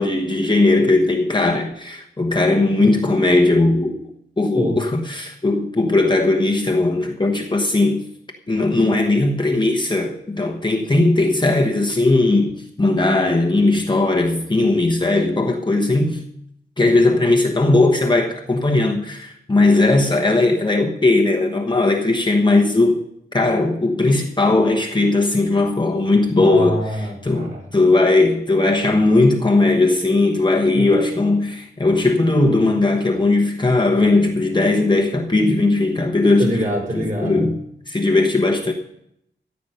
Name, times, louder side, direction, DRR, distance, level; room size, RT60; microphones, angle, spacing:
voice 1, 0.0-4.0 4.4-8.0 8.5-16.2 16.8-23.0 23.3-26.8 27.2-36.6 36.9-37.6 37.9-38.7, left 2 dB, 20° left, 1.1 m, -18 dB
voice 2, 26.4-27.6 30.7-30.8 36.4-37.5, equal, 35° right, 6.3 m, -25 dB
14.5 x 8.3 x 5.5 m
wide cardioid pair, 110°, 21 cm